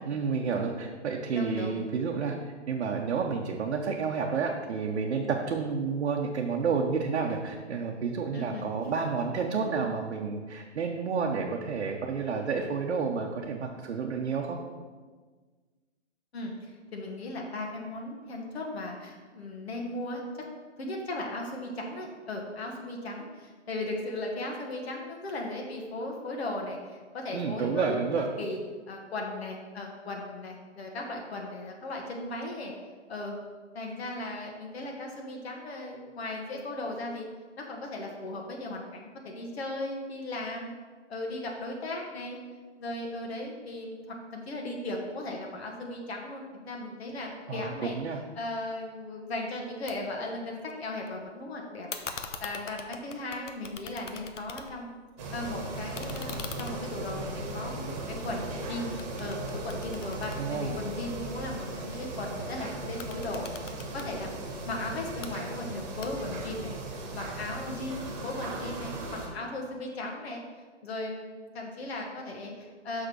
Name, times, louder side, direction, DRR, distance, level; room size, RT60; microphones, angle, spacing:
voice 1, 0.0-2.3 2.7-14.6 27.3-28.3 47.5-48.2 60.4-60.8, right 5 dB, 70° right, 0 dB, 0.9 m, -30 dB
voice 2, 1.3-1.8 8.3-8.7 16.3-20.2 20.8-28.0 28.4-28.6 28.9-32.7 33.1-33.4 33.7-37.3 37.6-40.8 41.1-42.4 42.8-48.0 48.3-51.9 52.4-54.9 55.3-58.9 59.2-64.3 64.7-70.4 70.8-73.1, left 2 dB, 60° left, 0 dB, 1.5 m, -37 dB
sound 1, 49.9-50.0 50.3-51.1 51.9-55.0 55.3-58.6 59.0-61.2 62.8-64.1 65.0-65.3 66.0-66.5, left 5 dB, 90° left, 1.0 m, -43 dB
sound 2, 55.2-69.3, right 2 dB, 25° right, 1.4 m, -37 dB
6.0 x 5.2 x 6.2 m, 1.4 s
hypercardioid pair, 150°, 36 cm